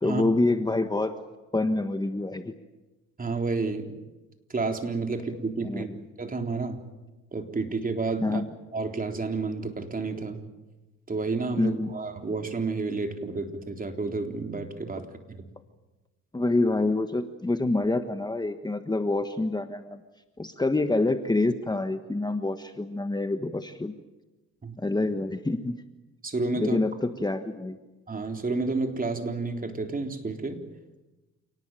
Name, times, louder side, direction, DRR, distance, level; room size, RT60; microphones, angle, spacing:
voice 1, 0.0-1.2 1.5-2.6 5.6-6.0 8.2-8.5 11.6-11.9 16.3-20.0 20.4-23.9 24.8-25.8 26.6-27.8, left 2 dB, 15° left, 8 dB, 1.4 m, -27 dB
voice 2, 3.2-4.0 4.5-5.9 6.2-6.9 7.3-8.4 8.7-10.4 11.1-15.5 24.6-24.7 26.2-26.8 28.1-30.6, right 3 dB, 30° right, 4 dB, 3.7 m, -30 dB
28.5 x 19.0 x 9.1 m, 1.1 s
cardioid pair, 90°, 30 cm